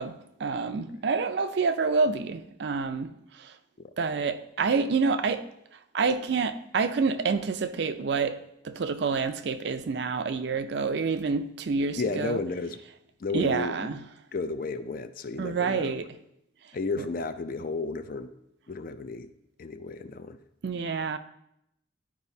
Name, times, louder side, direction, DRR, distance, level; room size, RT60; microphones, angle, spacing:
voice 1, 0.0-3.5 4.0-5.5 5.9-12.4 13.3-14.0 15.4-16.1 20.6-21.2, right 4 dB, 60° right, 0.4 m, -28 dB
voice 2, 12.0-12.8 13.2-13.9 14.3-16.0 16.7-18.3 18.7-19.3 19.6-20.4, left 3 dB, 45° left, 0.4 m, -33 dB
11.5 x 4.8 x 2.7 m
head